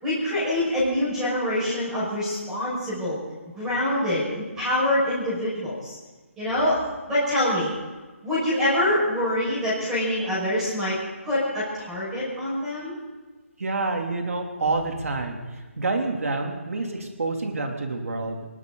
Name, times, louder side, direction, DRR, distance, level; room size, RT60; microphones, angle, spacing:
voice 1, 0.0-3.2 3.6-6.0 6.4-7.7 8.2-11.0 11.2-13.0, left 1 dB, 5° right, -9 dB, 5.9 m, -25 dB
voice 2, 13.6-15.4 15.8-18.5, right 3 dB, 75° right, 2 dB, 3.2 m, -27 dB
27.5 x 12.5 x 4.0 m, 1.2 s
hypercardioid pair, 170°, 8 cm